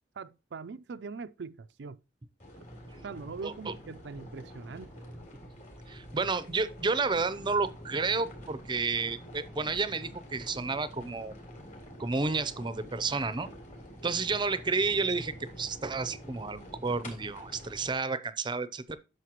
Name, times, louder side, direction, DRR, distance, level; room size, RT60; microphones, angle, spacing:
voice 1, 0.2-2.0 3.0-5.0, right 4 dB, 70° right, 0.4 m, -42 dB
sound 1, 2.4-17.9, equal, 40° left, 3.5 m, -47 dB
voice 2, 3.4-3.7 5.9-11.3 12.0-13.5 14.0-19.0, right 4 dB, 25° right, 0.6 m, -31 dB
11.0 x 6.7 x 3.0 m
head